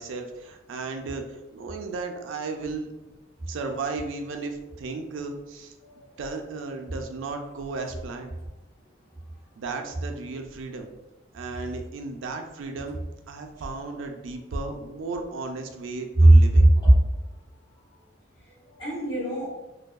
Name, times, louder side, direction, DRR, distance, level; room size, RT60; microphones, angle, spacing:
voice 1, 0.0-3.1 3.5-5.7 6.2-8.3 9.6-10.9 11.3-13.0 13.3-16.7, right 3 dB, 80° right, 4 dB, 0.4 m, -34 dB
voice 2, 16.2-16.7 18.4-19.5, right 1 dB, 20° left, -11 dB, 1.0 m, -18 dB
2.6 x 2.2 x 2.3 m, 0.99 s
head